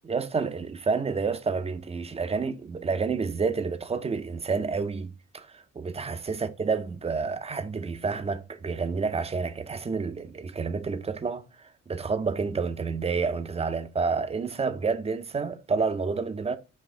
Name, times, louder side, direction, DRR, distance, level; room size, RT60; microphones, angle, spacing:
voice 1, 0.1-16.6, right 5 dB, 20° right, 0.5 m, -29 dB
4.1 x 2.5 x 3.6 m
cardioid pair, 90°, 30 cm